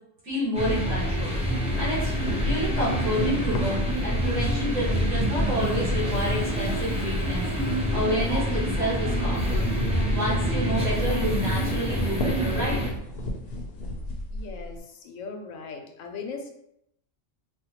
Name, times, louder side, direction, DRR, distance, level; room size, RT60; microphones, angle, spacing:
voice 1, 0.2-7.5 7.9-9.6 10.1-12.8, equal, 70° right, -8 dB, 1.7 m, -29 dB
sound 1, 0.5-12.9, equal, 10° right, 0.3 m, -26 dB
sound 2, 1.6-7.1 7.4-14.8, left 1 dB, 60° left, 0.7 m, -35 dB
voice 2, 14.3-16.5, left 4 dB, 85° left, 4 dB, 1.0 m, -38 dB
4.3 x 2.2 x 2.8 m, 0.76 s
omnidirectional pair, 1.3 m